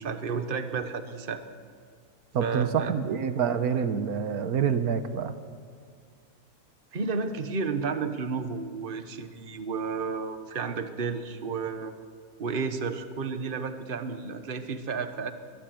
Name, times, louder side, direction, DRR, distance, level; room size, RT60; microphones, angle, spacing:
voice 1, 0.0-1.4 2.4-2.9 6.9-11.9 12.4-15.3, right 5 dB, 40° right, 8 dB, 1.3 m, -32 dB
voice 2, 2.3-5.3, right 7 dB, 85° right, 10 dB, 1.5 m, -27 dB
22.5 x 21.0 x 7.7 m, 2.1 s
omnidirectional pair, 1.5 m